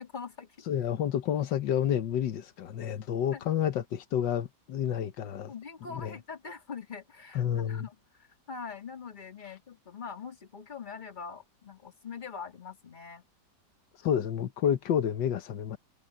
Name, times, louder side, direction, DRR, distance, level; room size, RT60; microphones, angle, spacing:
voice 1, 0.0-0.5 3.3-3.4 5.5-13.2 15.6-15.7, left 5 dB, 25° left, 2.1 m, -43 dB
voice 2, 0.7-5.5 5.9-6.1 7.4-7.9 14.0-15.8, left 9 dB, 90° left, 1.7 m, -29 dB
omnidirectional pair, 1.9 m